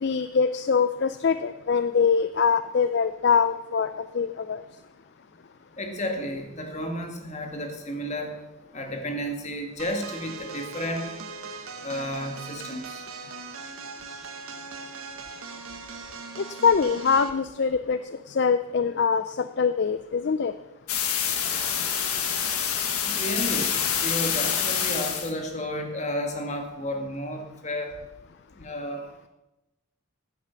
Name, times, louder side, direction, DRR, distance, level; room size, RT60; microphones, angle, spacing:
voice 1, 0.0-4.6 16.4-18.0 18.3-20.5, left 6 dB, 50° left, 12 dB, 0.4 m, -23 dB
voice 2, 5.8-8.3 8.7-11.1 11.8-13.0 23.0-27.9 28.6-29.1, equal, 30° left, 3 dB, 1.9 m, -32 dB
sound 1, 9.8-17.4, right 4 dB, 80° right, 1.3 m, -40 dB
sound 2, 20.9-25.3, left 8 dB, 90° left, 1.6 m, -26 dB
14.5 x 9.3 x 5.8 m, 0.99 s
head